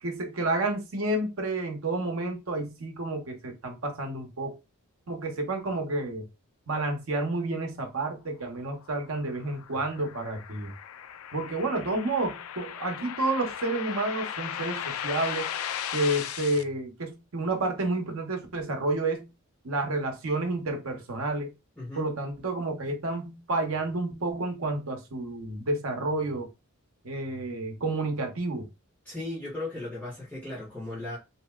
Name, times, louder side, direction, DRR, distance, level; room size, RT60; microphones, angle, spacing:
voice 1, 0.0-4.6 5.1-6.3 6.7-10.7 11.3-15.5 15.9-19.2 19.6-21.5 21.9-26.5 27.0-28.7, right 2 dB, 75° right, 0.8 m, -30 dB
sound 1, 8.8-16.6, left 9 dB, 75° left, 0.3 m, -37 dB
voice 2, 21.8-22.1 29.0-31.2, left 2 dB, 10° left, 1.4 m, -36 dB
2.9 x 2.8 x 2.2 m
head